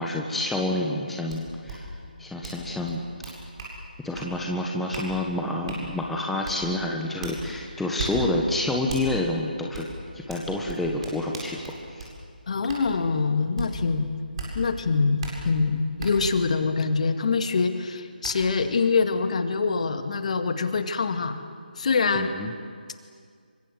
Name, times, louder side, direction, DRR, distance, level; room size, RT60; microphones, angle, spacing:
voice 1, 0.0-1.9 2.2-3.0 4.0-9.9 10.1-11.6 11.9-12.1 22.2-22.5, left 1 dB, 5° left, 0 dB, 1.5 m, -28 dB
sound 1, 1.3-1.4 1.7-1.8 2.4-2.6 2.9-3.7 4.1-4.3 4.9-5.1 5.7-5.8 6.4-6.6 7.2-7.4 8.0-8.1 8.9-9.0 9.7-9.9 10.3-12.1 12.7-12.8 13.6-13.7 14.4-14.5 15.2-15.3 16.0-16.1 17.6-17.7 18.2-18.3, right 5 dB, 35° right, 7.8 m, -36 dB
voice 2, 12.5-14.1 14.5-21.4 21.8-22.3, left 4 dB, 45° left, 8 dB, 2.0 m, -24 dB
28.0 x 24.0 x 8.0 m, 2.1 s
figure-of-eight pair, 155°, 5 cm